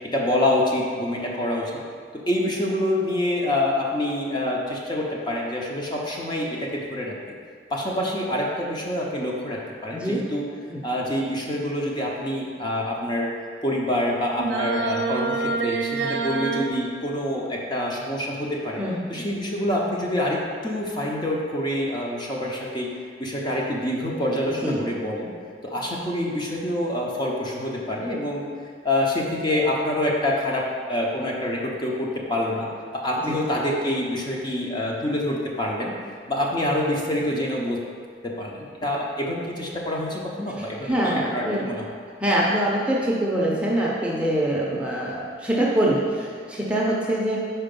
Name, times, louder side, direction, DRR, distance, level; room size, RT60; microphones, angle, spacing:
voice 1, 0.1-1.7 2.1-7.1 7.7-10.5 10.8-13.3 13.6-18.8 19.1-22.9 23.2-25.3 25.6-28.5 28.8-32.7 32.9-35.9 36.3-37.8 38.2-41.8, left 1 dB, 25° left, -3 dB, 0.7 m, -26 dB
voice 2, 9.9-10.3 10.7-10.8 18.8-19.2 24.5-24.8 33.3-33.4 40.6-41.7 42.2-47.4, right 1 dB, 5° right, -5 dB, 0.6 m, -24 dB
sound 1, 14.4-16.7, right 4 dB, 85° right, 0.6 m, -26 dB
4.9 x 4.4 x 5.3 m, 2.1 s
head